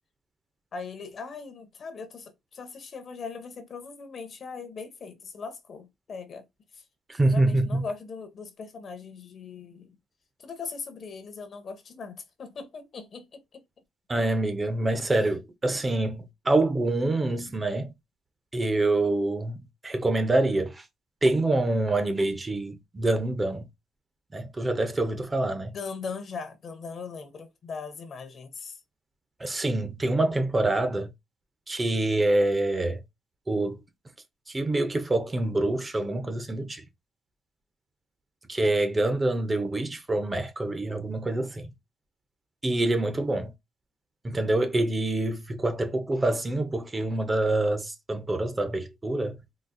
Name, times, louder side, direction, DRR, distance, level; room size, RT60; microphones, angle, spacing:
voice 1, 0.7-6.4 6.7-6.8 7.2-10.0 10.4-13.6 25.7-28.8, left 5 dB, 40° left, 0.6 m, -39 dB
voice 2, 7.1-7.8 14.1-17.9 18.5-19.6 19.8-20.9 21.2-23.7 24.3-25.7 29.4-31.1 31.7-33.0 33.5-33.8 34.5-36.8 38.5-41.7 42.6-43.5 44.2-49.4, right 2 dB, 15° right, 0.4 m, -26 dB
3.9 x 2.4 x 2.5 m
cardioid pair, 160°, 0 cm